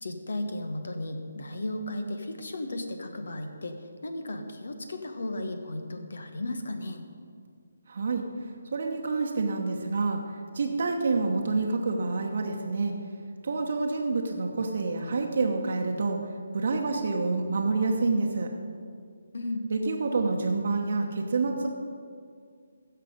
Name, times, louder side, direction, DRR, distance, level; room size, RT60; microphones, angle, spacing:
voice 1, 0.0-3.8 4.0-7.0 19.3-19.6, left 1 dB, 65° left, 6 dB, 1.3 m, -35 dB
voice 2, 7.9-8.2 8.7-10.2 10.5-12.9 13.4-16.2 16.5-18.5 19.7-21.7, right 3 dB, 55° right, 2 dB, 1.0 m, -27 dB
15.5 x 5.8 x 5.2 m, 2.2 s
figure-of-eight pair, 145°, 0 cm